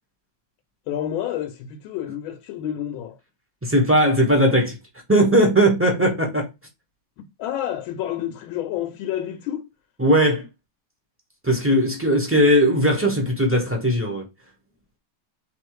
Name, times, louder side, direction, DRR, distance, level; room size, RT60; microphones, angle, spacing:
voice 1, 0.9-3.2 7.2-9.7, left 11 dB, 75° left, 1.3 m, -29 dB
voice 2, 3.6-4.8 5.1-6.5 10.0-10.4 11.4-14.3, equal, 15° right, 0.4 m, -18 dB
3.6 x 3.1 x 4.7 m
omnidirectional pair, 2.3 m